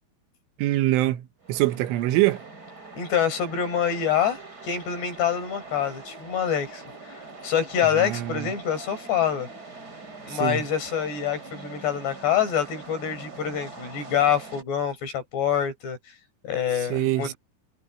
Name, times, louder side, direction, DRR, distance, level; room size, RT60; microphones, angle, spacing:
voice 1, 0.6-2.4 8.0-8.5 10.3-10.6 16.9-17.3, right 16 dB, 85° right, 3.6 m, -24 dB
sound 1, 1.4-14.6, right 3 dB, 20° right, 4.1 m, -43 dB
voice 2, 3.0-9.5 10.2-16.2 16.4-17.3, left 8 dB, 60° left, 7.1 m, -26 dB
omnidirectional pair, 5.5 m